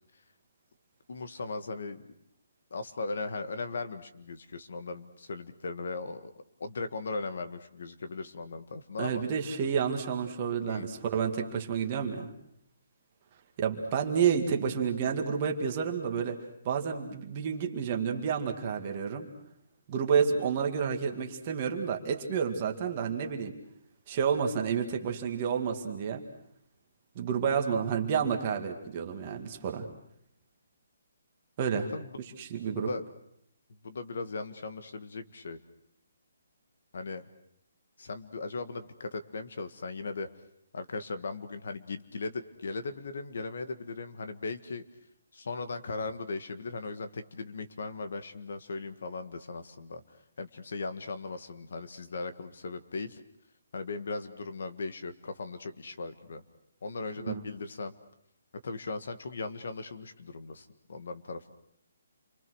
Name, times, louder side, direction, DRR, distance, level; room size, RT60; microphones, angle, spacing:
voice 1, 1.1-2.1 2.7-6.3 6.6-9.2 10.7-10.9 31.9-32.4 32.7-33.0 33.8-35.6 36.9-37.3 38.0-40.3 40.7-44.8 45.3-53.2 53.7-56.4 56.8-57.9 58.6-61.5, left 3 dB, 55° left, 9 dB, 1.8 m, -38 dB
voice 2, 9.0-12.3 13.6-16.4 16.6-19.3 19.9-23.6 24.1-26.2 27.2-29.9 31.6-31.9 32.4-32.9 57.2-57.4, right 7 dB, 25° right, 3 dB, 2.1 m, -30 dB
29.0 x 24.0 x 6.4 m, 0.71 s
hypercardioid pair, 175°, 0 cm